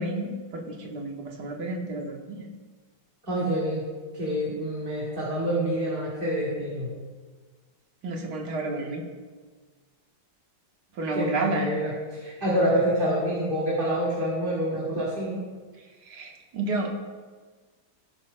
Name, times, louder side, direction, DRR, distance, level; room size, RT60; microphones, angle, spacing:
voice 1, 0.0-2.4 8.0-9.0 11.0-11.7 16.1-16.9, right 2 dB, 65° right, 1 dB, 1.8 m, -30 dB
voice 2, 3.2-3.8 4.2-6.9 11.1-15.4, equal, 30° right, -8 dB, 2.1 m, -27 dB
16.5 x 9.1 x 2.2 m, 1.4 s
omnidirectional pair, 2.0 m